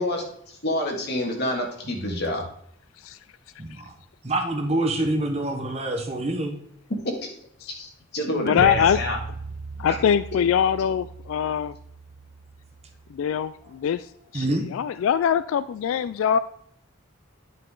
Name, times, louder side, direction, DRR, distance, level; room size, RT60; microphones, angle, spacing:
voice 1, 0.0-2.5 7.0-7.3 7.7-9.2 9.9-10.0, left 1 dB, 55° left, 1 dB, 2.0 m, -28 dB
voice 2, 2.0-2.3 3.6-3.9 4.2-6.6 14.3-14.7, right 1 dB, 30° right, 5 dB, 1.0 m, -26 dB
voice 3, 8.4-9.0 9.8-11.7 13.1-14.1 14.3-16.4, left 8 dB, 75° left, 15 dB, 0.3 m, -23 dB
sound 1, 8.6-13.6, right 3 dB, 60° right, 0.6 m, -37 dB
9.5 x 5.5 x 3.8 m, 0.66 s
head